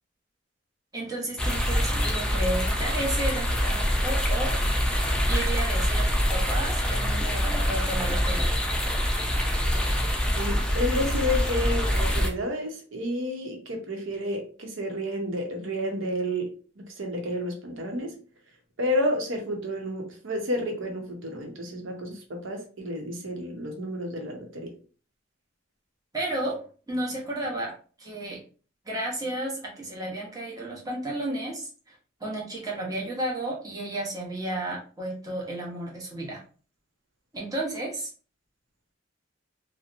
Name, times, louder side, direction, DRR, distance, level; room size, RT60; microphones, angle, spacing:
voice 1, 0.9-4.6 5.3-8.5 26.1-28.4 28.9-31.9 32.2-36.4 37.3-38.1, right 1 dB, 20° right, -3 dB, 0.8 m, -33 dB
sound 1, 1.4-12.3, equal, 5° left, 0.3 m, -25 dB
voice 2, 10.4-16.5 16.8-18.1 18.8-24.7, left 1 dB, 90° right, 2 dB, 0.8 m, -30 dB
2.8 x 2.1 x 2.5 m, 0.39 s
head